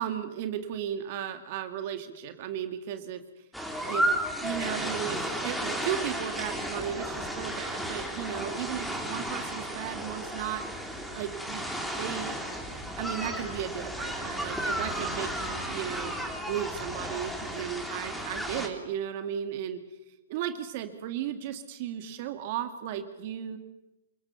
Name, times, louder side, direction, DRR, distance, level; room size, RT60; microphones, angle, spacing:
voice 1, 0.0-3.2 3.9-4.1 4.4-10.7 11.1-12.4 13.0-16.1 16.5-19.8 20.3-23.6, right 10 dB, 50° right, 8 dB, 2.0 m, -35 dB
sound 1, 3.5-18.7, right 1 dB, ahead, 3.6 m, -33 dB
27.5 x 18.5 x 7.1 m, 0.98 s
hypercardioid pair, 135°, 0 cm